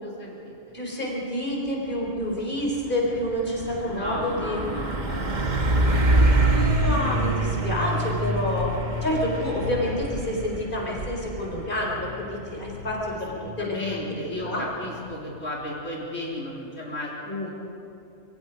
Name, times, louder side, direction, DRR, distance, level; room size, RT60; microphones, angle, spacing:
voice 1, 0.0-0.7 3.8-5.6 13.1-17.5, left 1 dB, 90° left, -4 dB, 4.1 m, -35 dB
voice 2, 0.7-4.6 6.5-8.7 9.0-13.3 13.6-14.0 14.4-14.6, left 1 dB, 40° left, -2 dB, 4.5 m, -28 dB
Truck, 2.1-2.3 2.7-15.2, right 1 dB, 40° right, 1.5 m, -27 dB
sound 1, 4.1-4.5 4.9-5.0 5.4-5.5 5.8-11.7, right 3 dB, 85° right, 2.0 m, -39 dB
26.5 x 23.5 x 5.3 m, 2.7 s
omnidirectional pair, 1.3 m